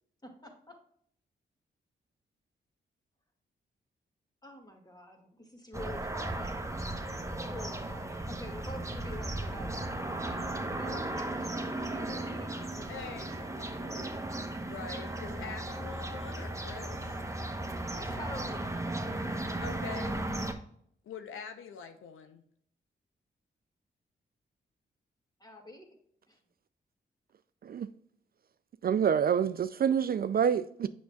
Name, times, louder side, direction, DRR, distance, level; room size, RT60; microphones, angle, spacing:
voice 1, 0.2-0.7 4.4-6.6 7.3-9.9 10.4-12.9 17.8-19.2 25.4-25.9 26.3-26.4, left 1 dB, 20° left, 2.0 m, -47 dB
sound 1, 5.7-20.5, right 1 dB, 15° right, 1.0 m, -36 dB
voice 2, 12.9-14.2 14.6-17.2 19.6-20.2 21.0-22.4, left 6 dB, 75° left, 0.7 m, -44 dB
voice 3, 28.8-30.9, right 8 dB, 45° right, 0.4 m, -27 dB
6.9 x 6.2 x 2.3 m
supercardioid pair, 45°, 21 cm